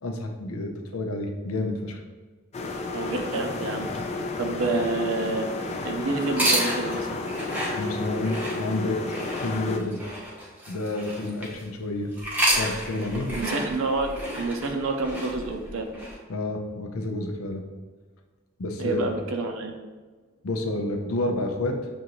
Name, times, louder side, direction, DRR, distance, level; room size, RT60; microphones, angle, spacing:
voice 1, 0.0-2.0 7.8-9.0 9.4-10.0 10.7-12.1 12.6-13.3 16.3-17.6 18.6-19.2 20.4-21.8, left 2 dB, 90° left, 4 dB, 0.6 m, -29 dB
sound 1, 2.5-9.8, left 3 dB, 30° left, 0.3 m, -32 dB
voice 2, 2.9-3.9 4.4-5.5 5.8-7.2 13.3-15.9 18.8-19.7, right 3 dB, 70° right, 4 dB, 0.5 m, -28 dB
sound 2, 6.3-11.6 12.1-16.2, equal, 10° right, 0.7 m, -30 dB
6.2 x 2.6 x 2.9 m, 1.4 s
head